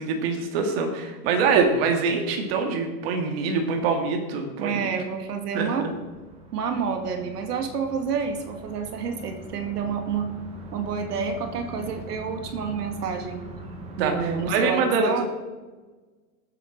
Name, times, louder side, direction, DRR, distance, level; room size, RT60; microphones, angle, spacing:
voice 1, 0.0-4.9 5.5-5.9 14.0-15.2, right 4 dB, 40° right, 3 dB, 2.0 m, -24 dB
voice 2, 4.6-5.9 6.5-10.3 10.7-13.4 14.0-15.2, right 6 dB, 90° right, 5 dB, 2.2 m, -29 dB
sound 1, 5.0-14.6, right 1 dB, 15° right, 1.0 m, -42 dB
19.5 x 8.0 x 4.0 m, 1.3 s
supercardioid pair, 165°, 46 cm